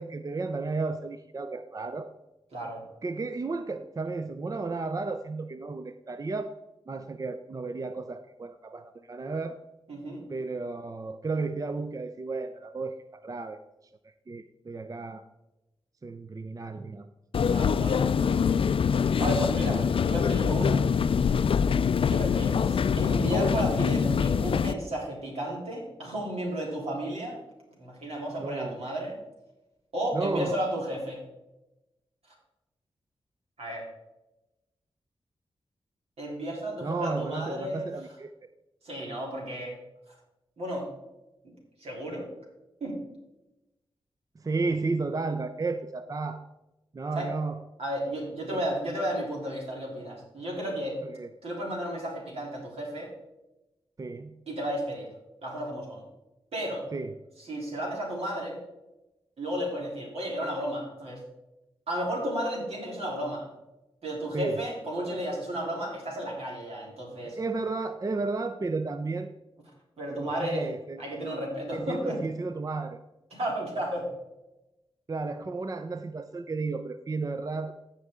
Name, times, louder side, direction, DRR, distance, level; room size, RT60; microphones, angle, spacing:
voice 1, 0.0-2.1 3.0-6.6 6.9-9.6 10.3-13.6 14.0-15.2 16.0-17.1 28.4-28.8 30.1-30.6 36.8-38.3 44.4-46.4 46.9-47.6 48.5-48.7 51.0-51.3 54.0-54.4 56.9-57.2 64.3-64.6 67.2-69.3 70.2-71.0 71.7-73.0 75.1-77.8, right 3 dB, 35° right, 9 dB, 0.5 m, -33 dB
voice 2, 2.5-2.8 9.9-10.2 17.5-18.0 19.2-20.9 22.1-27.4 27.8-29.2 29.9-31.2 33.6-33.9 36.2-37.9 38.8-39.8 40.6-40.9 41.4-41.5 41.8-42.3 42.8-43.0 47.1-47.3 47.8-51.0 51.4-53.1 54.5-55.1 55.4-56.0 56.5-56.9 57.4-58.6 59.4-61.2 61.9-63.5 64.0-67.4 70.0-70.7 71.0-72.2 73.3-74.1, right 1 dB, 85° right, -2 dB, 3.3 m, -33 dB
sound 1, 17.3-24.7, left 6 dB, 65° left, 0.4 m, -24 dB
15.5 x 5.5 x 3.7 m, 0.97 s
cardioid pair, 70°, 10 cm